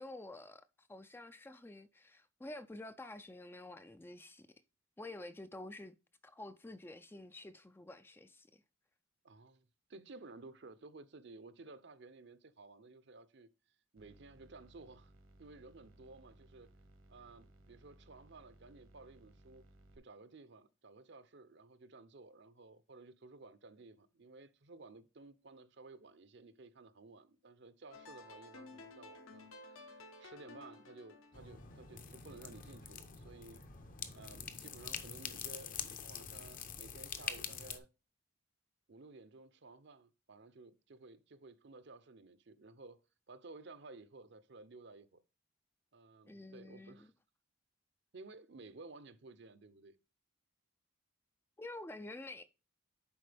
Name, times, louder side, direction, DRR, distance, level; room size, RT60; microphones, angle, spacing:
voice 1, 0.0-4.5 5.0-5.9 6.2-8.6 46.3-47.1 51.6-52.4, left 2 dB, 10° left, 0.3 m, -49 dB
voice 2, 9.2-13.5 13.9-15.1 15.4-16.7 17.1-19.6 20.0-33.6 34.1-37.9 38.9-43.0 43.3-45.2 45.9-47.1 48.1-50.0, right 3 dB, 55° right, 0.6 m, -55 dB
sound 1, 14.0-20.0, right 1 dB, 70° right, 1.2 m, -62 dB
sound 2, 27.9-33.0, left 3 dB, 80° left, 1.4 m, -55 dB
sound 3, 31.3-37.8, left 7 dB, 40° left, 0.7 m, -45 dB
10.5 x 4.3 x 3.4 m
head